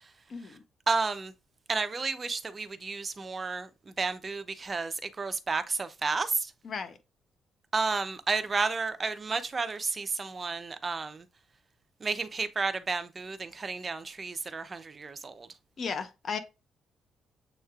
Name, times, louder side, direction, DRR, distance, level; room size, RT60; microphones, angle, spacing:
voice 1, 0.3-0.6 6.6-7.0 15.8-16.4, left 5 dB, 50° left, 0.8 m, -35 dB
voice 2, 0.9-1.3 1.7-3.7 4.0-6.5 7.7-11.2 12.0-15.5, right 4 dB, 30° right, 0.5 m, -31 dB
7.2 x 3.1 x 2.4 m
cardioid pair, 90°, 0 cm